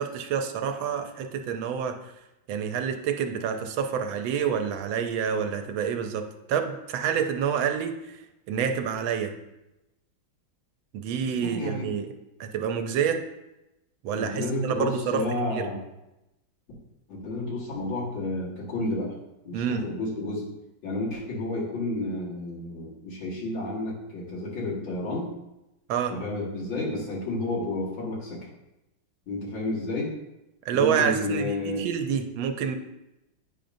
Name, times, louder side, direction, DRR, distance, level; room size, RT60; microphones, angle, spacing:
voice 1, 0.0-2.0 2.5-8.0 8.5-9.3 10.9-12.1 12.4-13.2 14.0-15.2 15.5-15.7 19.5-19.8 25.9-26.1 30.7-32.8, right 7 dB, 85° right, 6 dB, 1.4 m, -28 dB
voice 2, 11.3-11.9 14.1-15.8 17.1-19.1 19.4-20.5 20.8-25.3 26.1-28.5 29.3-30.2 30.7-31.9, left 2 dB, 75° left, -5 dB, 2.4 m, -31 dB
9.0 x 5.1 x 2.6 m, 0.93 s
omnidirectional pair, 2.1 m